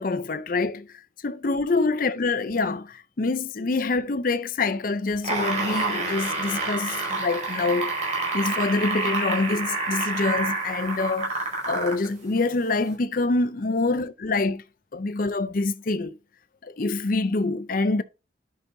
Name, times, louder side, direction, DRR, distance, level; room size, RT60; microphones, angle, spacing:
voice 1, 0.0-14.6 14.9-16.2 16.6-18.0, left 3 dB, 45° left, 0.5 m, -26 dB
sound 1, 5.1-12.1 12.9-13.0, right 3 dB, 40° right, 5.1 m, -28 dB
10.5 x 6.2 x 2.7 m
head